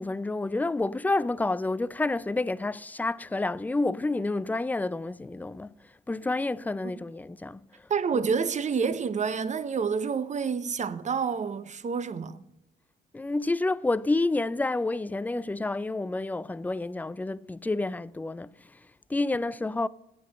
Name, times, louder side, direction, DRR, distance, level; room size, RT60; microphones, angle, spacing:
voice 1, 0.0-5.7 6.1-7.6 8.1-8.2 13.1-18.5 19.1-19.9, left 2 dB, 10° left, 0.3 m, -29 dB
voice 2, 7.9-12.4, right 6 dB, 35° right, 0.8 m, -28 dB
8.7 x 8.3 x 7.6 m
cardioid pair, 90°, 20 cm